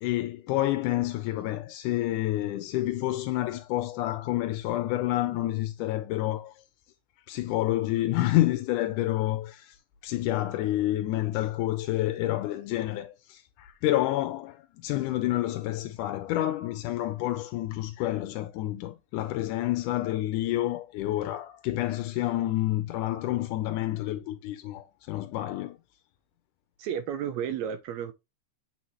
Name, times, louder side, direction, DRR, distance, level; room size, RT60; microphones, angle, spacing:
voice 1, 0.0-6.5 7.3-9.8 10.0-25.8, left 15 dB, 90° left, 2.1 m, -29 dB
voice 2, 26.8-28.1, right 8 dB, 80° right, 1.7 m, -32 dB
7.7 x 4.4 x 2.9 m
omnidirectional pair, 3.5 m